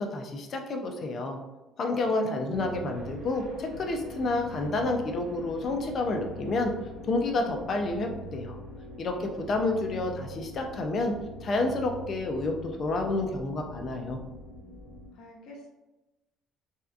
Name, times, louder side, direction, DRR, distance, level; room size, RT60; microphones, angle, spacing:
voice 1, 0.0-1.4 1.8-6.7 7.0-8.6 9.0-11.1 11.4-14.2, left 2 dB, 40° left, 3 dB, 0.5 m, -29 dB
voice 2, 2.1-2.8 15.1-15.7, left 1 dB, 70° left, 0 dB, 0.8 m, -45 dB
sound 1, 2.5-15.1, equal, 60° right, 1.5 m, -43 dB
3.3 x 2.7 x 2.4 m, 1.0 s
cardioid pair, 130°, 0 cm